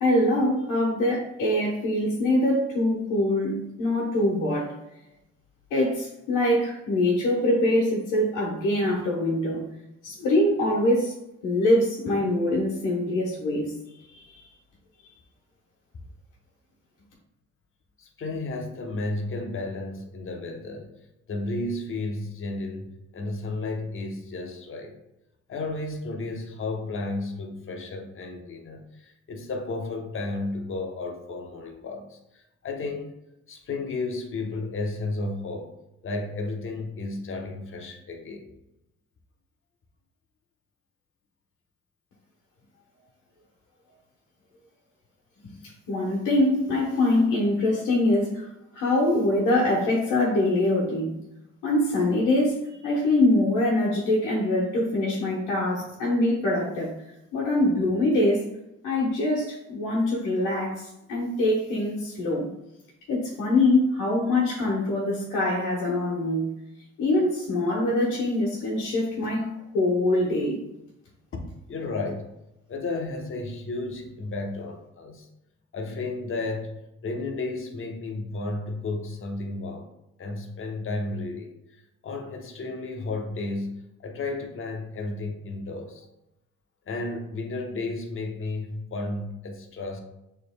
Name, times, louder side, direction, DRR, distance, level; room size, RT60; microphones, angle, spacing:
voice 1, 0.0-4.7 5.7-9.6 10.0-11.1 11.4-13.7 14.1-14.4 45.9-48.5 48.7-51.2 51.6-56.9 57.3-58.5 58.8-62.5 63.1-66.5 67.0-70.6, left 1 dB, 85° left, -5 dB, 1.2 m, -24 dB
voice 2, 18.0-20.9 21.3-24.9 25.5-33.1 33.5-35.7 36.0-38.5 71.3-71.4 71.7-72.3 72.7-75.3 75.7-79.9 80.2-83.7 84.0-86.1 86.9-90.0, left 2 dB, 45° left, 2 dB, 1.0 m, -33 dB
6.6 x 3.3 x 2.3 m, 0.87 s
cardioid pair, 90°, 30 cm